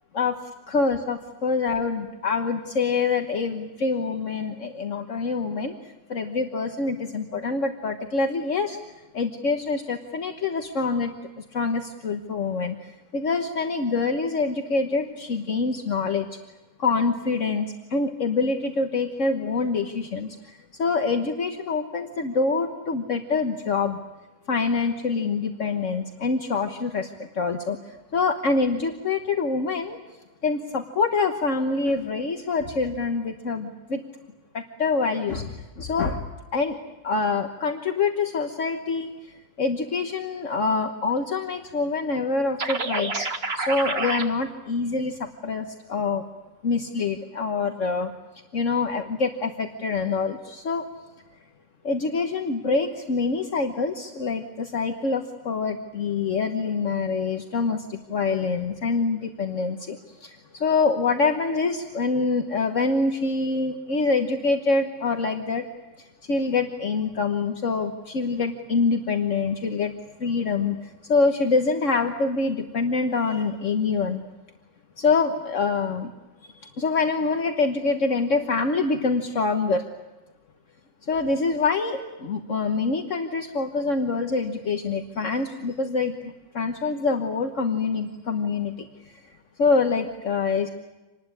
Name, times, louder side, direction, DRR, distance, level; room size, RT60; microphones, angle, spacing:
voice 1, 0.7-8.8 9.1-11.1 11.4-12.8 13.1-16.3 16.8-24.0 24.5-27.8 28.1-30.0 30.4-34.0 34.5-36.2 36.5-36.8 37.0-39.1 39.6-43.1 43.5-46.2 46.6-48.1 48.5-50.8 51.8-65.6 66.3-69.9 70.2-74.2 75.0-76.1 76.6-79.9 81.0-89.2 89.6-90.7, left 4 dB, 60° left, 5 dB, 1.7 m, -25 dB
sound 1, 42.6-44.2, right 3 dB, 45° right, 2.0 m, -28 dB
27.0 x 20.0 x 9.9 m, 1.1 s
omnidirectional pair, 1.4 m